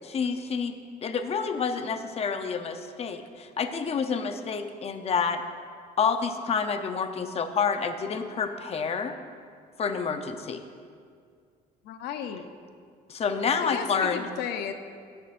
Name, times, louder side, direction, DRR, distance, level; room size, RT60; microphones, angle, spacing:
voice 1, 0.0-0.7 1.0-5.4 6.0-9.2 9.8-10.6 13.1-14.2, left 6 dB, 35° left, 7 dB, 0.7 m, -28 dB
voice 2, 11.8-12.5 13.6-14.7, left 8 dB, 85° left, 8 dB, 0.7 m, -34 dB
15.0 x 11.0 x 2.6 m, 2.2 s
cardioid pair, 110°, 17 cm